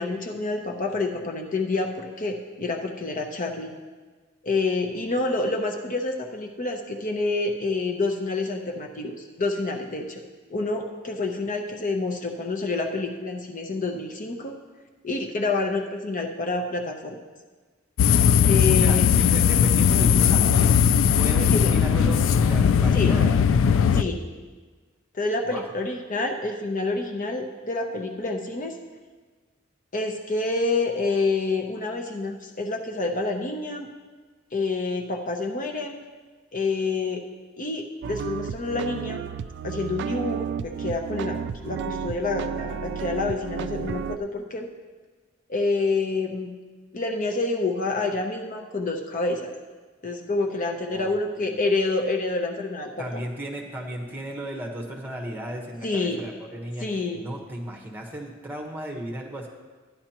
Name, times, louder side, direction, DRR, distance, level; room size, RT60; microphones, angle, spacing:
voice 1, 0.0-3.7 4.4-10.2 10.5-14.5 15.0-17.2 18.4-19.1 21.5-21.7 22.9-23.1 23.9-24.2 25.1-28.8 29.9-33.9 34.5-35.9 36.5-37.2 37.6-39.2 39.6-41.4 41.6-44.7 45.5-46.5 46.9-49.5 50.0-53.2 55.8-56.2 56.8-57.2, left 3 dB, 40° left, 2 dB, 0.7 m, -28 dB
sound 1, 18.0-24.0, left 7 dB, 70° left, 0.3 m, -19 dB
voice 2, 18.7-20.8 21.1-23.4 25.4-25.7 50.9-51.6 53.0-59.5, right 1 dB, 10° right, -1 dB, 1.3 m, -35 dB
sound 2, 38.0-44.2, right 7 dB, 60° right, 0.3 m, -32 dB
13.0 x 10.0 x 3.0 m, 1.4 s
head